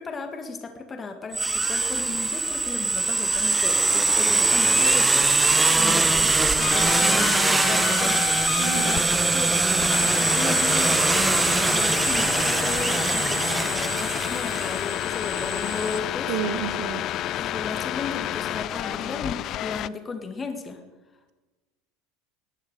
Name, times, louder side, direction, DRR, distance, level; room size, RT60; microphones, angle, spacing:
voice 1, 0.0-6.3 6.6-9.6 9.9-11.1 11.6-16.4 17.4-20.8, left 4 dB, 25° left, 6 dB, 1.9 m, -35 dB
sound 1, 1.3-16.0, right 3 dB, 15° right, 0.9 m, -22 dB
sound 2, 6.6-19.9, left 13 dB, 45° left, 0.4 m, -30 dB
voice 2, 8.6-8.9 16.3-17.1, right 10 dB, 55° right, 11 dB, 1.5 m, -30 dB
19.5 x 10.5 x 6.7 m, 1.2 s
figure-of-eight pair, 75°, 0 cm